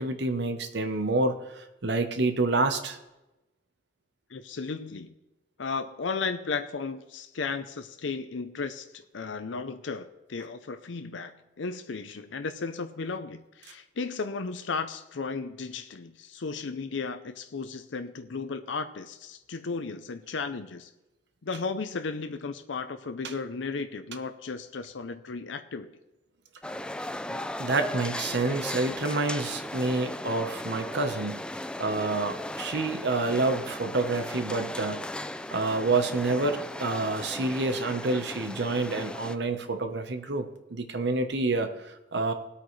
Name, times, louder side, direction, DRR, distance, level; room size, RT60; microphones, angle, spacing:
voice 1, 0.0-3.0 27.6-31.4 31.8-35.0 35.5-42.3, right 3 dB, 65° right, 7 dB, 1.0 m, -28 dB
voice 2, 4.3-5.1 5.6-20.9 21.4-25.9, left 4 dB, 85° left, 9 dB, 0.6 m, -35 dB
sound 1, 26.6-39.4, left 1 dB, 5° left, 0.3 m, -37 dB
19.0 x 8.4 x 3.2 m, 0.98 s
head